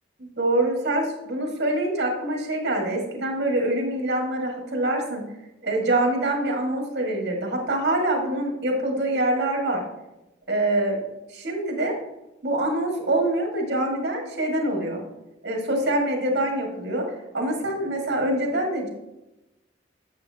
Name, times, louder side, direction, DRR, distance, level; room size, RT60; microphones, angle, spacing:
voice 1, 0.2-5.3 5.6-9.8 10.5-11.0 11.3-12.0 12.4-15.0 15.4-17.1 17.3-18.9, right 1 dB, 65° right, 0 dB, 2.0 m, -25 dB
8.7 x 7.1 x 2.9 m, 0.93 s
head